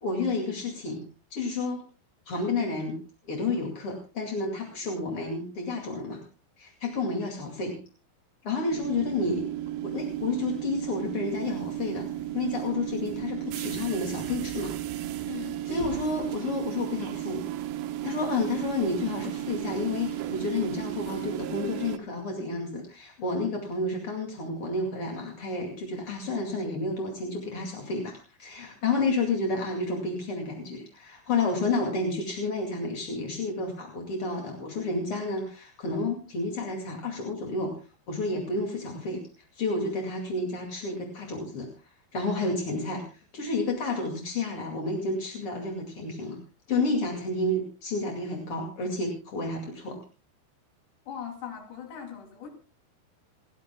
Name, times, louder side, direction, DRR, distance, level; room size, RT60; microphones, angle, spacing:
voice 1, 0.0-1.0 1.3-1.8 2.3-3.0 3.3-6.2 6.6-7.8 8.4-9.4 9.8-12.1 12.3-14.7 15.2-17.4 18.0-37.8 38.1-39.2 39.5-41.7 42.1-46.4 46.7-50.0, left 3 dB, 40° left, 1 dB, 2.3 m, -30 dB
sound 1, 8.7-22.0, right 13 dB, 80° right, 2.1 m, -34 dB
voice 2, 15.3-15.6 51.1-52.5, left 8 dB, 65° left, 3 dB, 4.9 m, -39 dB
29.0 x 11.0 x 2.3 m, 0.35 s
omnidirectional pair, 5.6 m